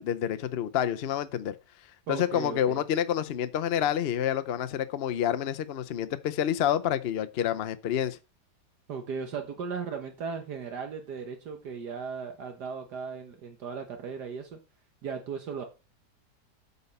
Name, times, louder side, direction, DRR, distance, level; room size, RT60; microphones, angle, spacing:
voice 1, 0.0-1.6 2.1-8.2, left 10 dB, 65° left, 0.6 m, -28 dB
voice 2, 2.1-2.8 8.9-14.6 15.0-15.6, right 5 dB, 65° right, 1.6 m, -37 dB
8.3 x 5.3 x 5.4 m
omnidirectional pair, 1.9 m